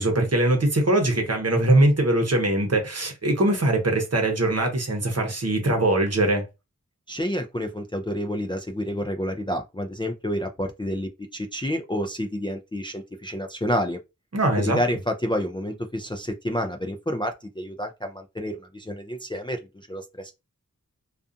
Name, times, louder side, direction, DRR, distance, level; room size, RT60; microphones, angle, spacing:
voice 1, 0.0-6.4 14.3-14.8, right 1 dB, 50° right, 0.9 m, -22 dB
voice 2, 7.1-14.0 14.6-20.3, equal, 15° left, 0.4 m, -29 dB
2.4 x 2.4 x 2.5 m
wide cardioid pair, 50°, 31 cm